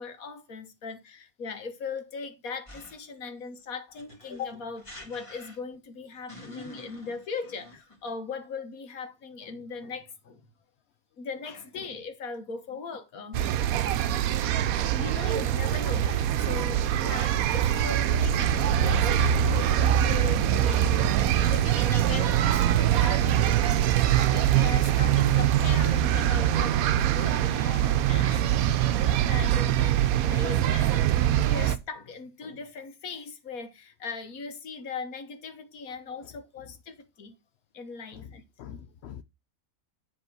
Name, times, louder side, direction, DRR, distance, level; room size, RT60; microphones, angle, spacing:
voice 1, 0.0-10.4 11.2-13.4 14.7-23.8 24.3-31.1 31.4-37.3 37.7-38.8, left 5 dB, 80° left, 1.6 m, -39 dB
sound 1, 2.7-3.2 3.9-5.8 6.3-8.1, left 1 dB, 20° left, 1.9 m, -47 dB
sound 2, 13.3-31.8, right 11 dB, 85° right, 1.1 m, -23 dB
voice 2, 38.1-39.2, left 9 dB, 65° left, 0.7 m, -45 dB
8.1 x 3.7 x 6.0 m
omnidirectional pair, 1.5 m